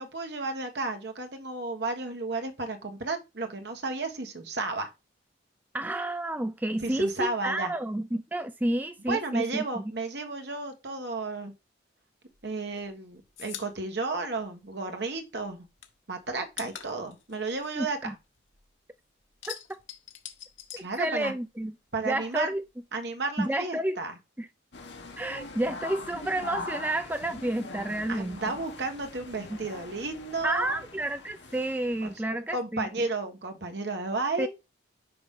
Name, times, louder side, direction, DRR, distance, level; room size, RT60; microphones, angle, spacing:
voice 1, 0.0-4.9 6.8-7.7 9.1-11.5 12.4-15.6 16.1-18.1 20.8-21.3 21.9-22.5 22.9-24.1 28.1-30.8 32.0-34.5, right 3 dB, 60° right, 1.4 m, -33 dB
voice 2, 5.7-9.8 17.8-18.1 19.5-19.6 21.0-21.7 22.1-22.6 23.4-24.0 24.4-24.5 25.2-28.4 30.4-32.9 34.4-34.5, right 1 dB, 10° right, 0.3 m, -30 dB
sound 1, 12.3-15.1 15.4-18.7 19.0-21.6 21.9-23.0, left 10 dB, 85° left, 1.2 m, -45 dB
sound 2, 24.7-32.2, left 3 dB, 65° left, 1.4 m, -42 dB
5.9 x 5.3 x 3.7 m
head